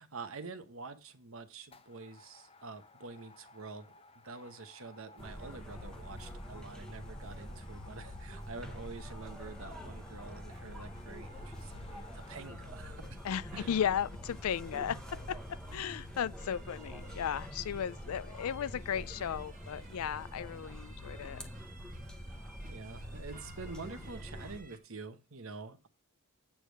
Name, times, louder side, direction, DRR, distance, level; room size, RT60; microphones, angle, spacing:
voice 1, 0.0-3.9 4.2-13.2 13.5-13.7 22.7-25.9, right 4 dB, 65° right, 0.9 m, -47 dB
sound 1, 0.8-1.1 1.6-12.4, left 3 dB, 25° left, 0.6 m, -58 dB
sound 2, 5.2-24.6, equal, 5° left, 0.9 m, -46 dB
sound 3, 9.2-24.8, right 3 dB, 35° right, 1.5 m, -59 dB
voice 2, 13.2-21.4, left 8 dB, 75° left, 0.4 m, -35 dB
8.7 x 3.4 x 6.4 m
head